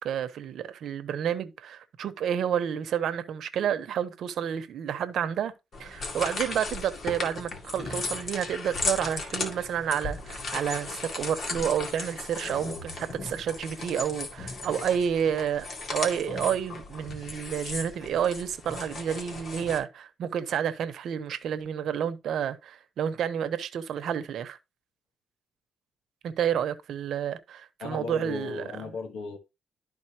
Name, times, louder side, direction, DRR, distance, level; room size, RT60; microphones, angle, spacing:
voice 1, 0.0-5.5 5.8-24.6 26.2-28.9, right 8 dB, 70° right, 1.0 m, -30 dB
sound 1, 5.7-19.8, left 3 dB, 50° left, 2.3 m, -36 dB
voice 2, 27.8-29.4, left 4 dB, 75° left, 1.4 m, -36 dB
12.0 x 4.1 x 2.9 m
cardioid pair, 90°, 0 cm